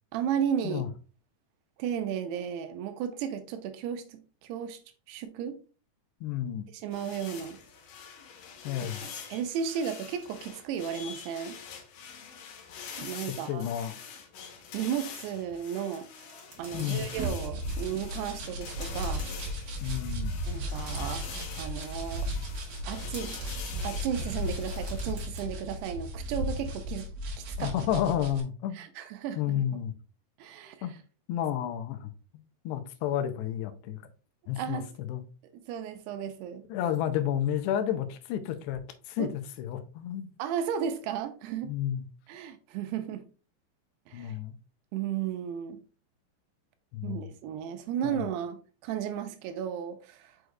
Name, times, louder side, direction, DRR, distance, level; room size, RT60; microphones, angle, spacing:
voice 1, 0.1-0.9 1.8-4.8 5.1-5.6 6.7-7.6 8.8-11.6 13.0-13.7 14.7-16.1 16.6-19.3 20.5-21.2 21.6-22.3 22.9-23.4 23.8-27.1 27.5-27.7 28.7-29.6 30.4-30.8 34.6-34.9 35.5-36.6 39.2-39.3 40.4-41.7 42.3-43.2 44.1-44.3 44.9-45.8 47.0-50.3, right 8 dB, 85° right, 2.7 m, -34 dB
voice 2, 6.2-6.7 8.6-9.0 13.5-14.0 16.7-17.0 19.8-20.3 27.6-28.8 29.4-29.9 30.8-30.9 31.3-32.1 32.7-34.0 34.5-35.2 36.7-38.8 39.1-39.3 39.6-40.3 41.6-42.1 44.1-44.5 46.9-47.3 48.0-48.3, left 10 dB, 90° left, 2.7 m, -31 dB
sound 1, 6.9-25.1, left 6 dB, 70° left, 2.2 m, -45 dB
sound 2, 14.9-15.6 16.0-17.1 17.4-17.5 18.3-18.4 18.8-19.8 20.3-21.9 22.9-23.8 24.2-25.4, right 2 dB, 40° right, 1.2 m, -50 dB
sound 3, 16.7-28.4, equal, 65° right, 3.0 m, -35 dB
6.5 x 6.2 x 2.3 m
omnidirectional pair, 4.8 m